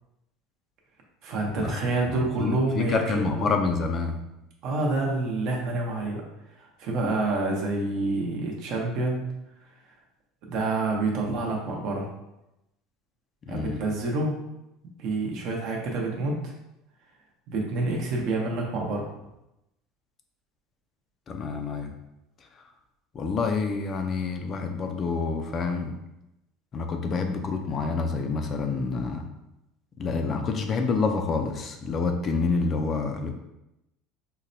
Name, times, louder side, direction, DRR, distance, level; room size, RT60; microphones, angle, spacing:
voice 1, 1.2-3.5 4.6-9.2 10.5-12.1 13.5-14.4 15.0-16.5 17.5-19.1, right 2 dB, 55° right, 0 dB, 0.8 m, -28 dB
voice 2, 2.1-4.2 13.4-13.8 21.3-21.9 23.1-26.0 26.7-29.2 30.0-33.3, left 4 dB, 30° left, 5 dB, 0.3 m, -27 dB
4.0 x 2.1 x 2.6 m, 0.90 s
cardioid pair, 140°, 0 cm